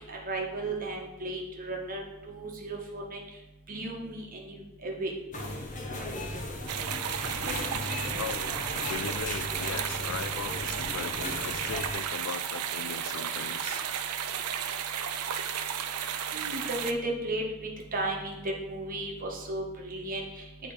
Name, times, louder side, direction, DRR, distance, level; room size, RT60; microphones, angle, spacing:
voice 1, 0.1-3.2 3.7-5.1 16.3-17.4 17.9-18.4 18.6-20.2, right 2 dB, 40° right, 0 dB, 1.2 m, -34 dB
sound 1, 5.3-11.9, left 1 dB, 35° left, 0.9 m, -37 dB
sound 2, 6.7-16.9, right 8 dB, 90° right, 0.5 m, -33 dB
voice 2, 8.2-8.6 8.9-13.8, left 7 dB, 65° left, 13 dB, 0.3 m, -39 dB
8.5 x 3.3 x 4.7 m, 0.97 s
head